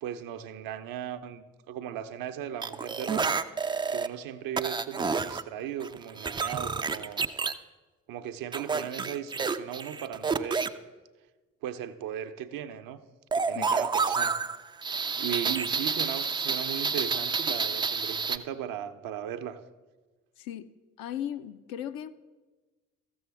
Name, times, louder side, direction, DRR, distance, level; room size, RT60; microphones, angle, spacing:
voice 1, 0.0-3.4 3.9-7.2 8.1-10.7 11.6-13.0 13.3-14.4 15.2-19.6, right 10 dB, 60° right, 10 dB, 0.6 m, -37 dB
sound 1, 2.6-4.1 4.6-5.4 5.8-7.5 8.5-10.7 13.3-18.4, right 5 dB, 15° right, 0.3 m, -29 dB
voice 2, 20.4-20.7 21.0-22.1, left 10 dB, 65° left, 10 dB, 0.6 m, -36 dB
14.0 x 7.0 x 3.4 m, 1.3 s
hypercardioid pair, 45°, 38 cm